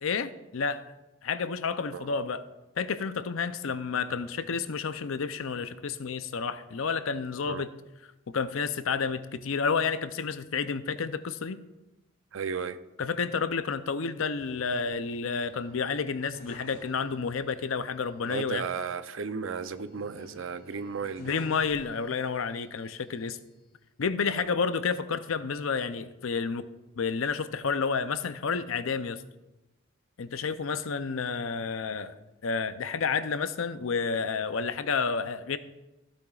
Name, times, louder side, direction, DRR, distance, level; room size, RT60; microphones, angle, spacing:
voice 1, 0.0-0.8 1.2-2.5 2.8-7.7 8.3-11.6 13.0-18.7 21.2-23.4 24.0-26.6 27.0-29.2 30.2-32.2 32.4-35.6, left 5 dB, 75° left, 12 dB, 0.6 m, -30 dB
voice 2, 12.3-12.8 18.3-21.3, right 5 dB, 65° right, 12 dB, 0.5 m, -34 dB
sound 1, 14.4-17.4 17.7-17.8 19.6-22.4 22.9-23.7, left 1 dB, 40° left, 1.9 m, -52 dB
15.0 x 8.7 x 2.4 m, 1.0 s
head